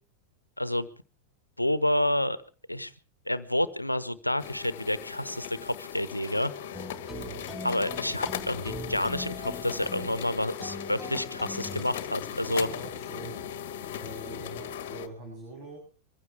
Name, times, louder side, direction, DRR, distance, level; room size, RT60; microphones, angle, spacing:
voice 1, 0.6-0.9 1.6-2.4 2.7-2.9 3.3-6.5 7.6-12.7, left 1 dB, 85° left, 16 dB, 1.0 m, -29 dB
sound 1, 4.4-15.1, left 9 dB, 55° left, 1.4 m, -38 dB
sound 2, 6.7-11.8, left 1 dB, 5° left, 1.5 m, -41 dB
voice 2, 12.5-13.4 14.0-15.8, right 2 dB, 35° right, -1 dB, 8.0 m, -43 dB
24.0 x 15.5 x 3.5 m, 0.36 s
figure-of-eight pair, 90°, 0 cm